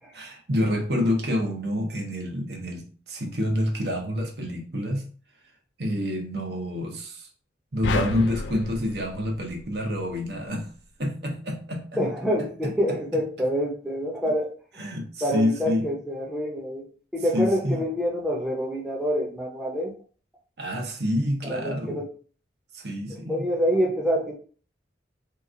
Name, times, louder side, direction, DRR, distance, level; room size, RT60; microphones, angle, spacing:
voice 1, 0.1-5.1 5.8-7.3 7.7-10.7 11.0-12.0 14.8-15.9 17.3-17.8 20.6-22.0 22.7-23.5, left 1 dB, 65° right, 2 dB, 0.9 m, -28 dB
sound 1, 7.8-10.2, left 4 dB, 90° left, 0.3 m, -32 dB
voice 2, 12.0-14.5 15.2-16.9 17.1-19.9 21.4-22.1 23.1-24.3, equal, 5° right, -3 dB, 0.6 m, -26 dB
3.0 x 2.4 x 3.7 m, 0.41 s
head